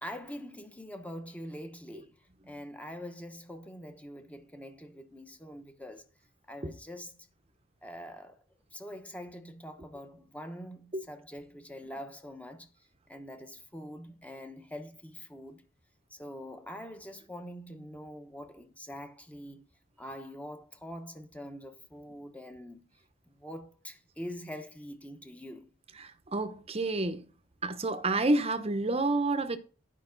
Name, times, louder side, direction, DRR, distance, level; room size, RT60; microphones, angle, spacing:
voice 1, 0.0-2.1 2.4-6.1 6.5-7.3 7.8-8.4 8.7-12.7 13.1-15.6 16.1-19.6 20.0-22.9 23.3-25.7, equal, 5° left, 1.0 m, -44 dB
voice 2, 26.0-27.2 27.6-29.6, right 2 dB, 30° right, 0.8 m, -29 dB
11.0 x 5.3 x 3.9 m
head